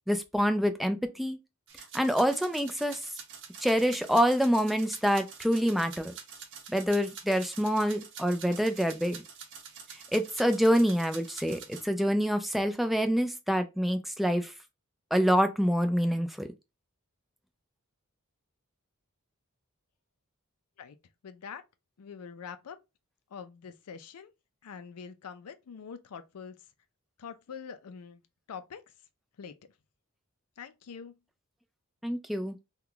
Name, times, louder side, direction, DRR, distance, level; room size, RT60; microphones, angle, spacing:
voice 1, 0.1-1.4 1.9-3.0 3.6-6.1 6.7-9.2 10.1-14.5 15.1-16.5 32.0-32.5, equal, ahead, 0.3 m, -26 dB
sound 1, 1.7-11.8, right 6 dB, 55° right, 0.7 m, -47 dB
voice 2, 21.2-21.6 22.0-22.8 23.3-24.3 24.6-26.6 27.2-28.2 28.5-28.8 29.4-29.5 30.6-31.1, left 6 dB, 80° left, 0.4 m, -44 dB
2.8 x 2.3 x 3.7 m
head